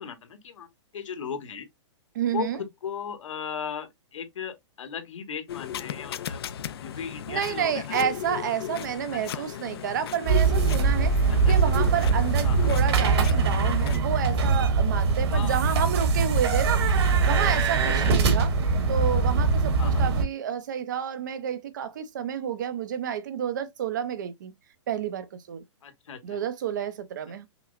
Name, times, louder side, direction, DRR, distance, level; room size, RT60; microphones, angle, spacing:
voice 1, 0.0-1.7 2.3-6.4 6.8-8.0 9.1-9.6 11.3-11.5 12.4-12.7 15.3-15.9 17.9-18.1 19.8-20.0 25.8-26.4, left 7 dB, 85° left, 1.2 m, -37 dB
voice 2, 2.1-2.6 7.3-18.5 18.9-24.5 24.9-25.6 26.2-27.5, right 8 dB, 40° right, 0.5 m, -30 dB
sound 1, 5.5-14.0, left 9 dB, 55° left, 0.4 m, -35 dB
sound 2, 10.3-20.2, right 4 dB, 60° right, 1.3 m, -22 dB
5.7 x 2.0 x 2.4 m
hypercardioid pair, 175°, 16 cm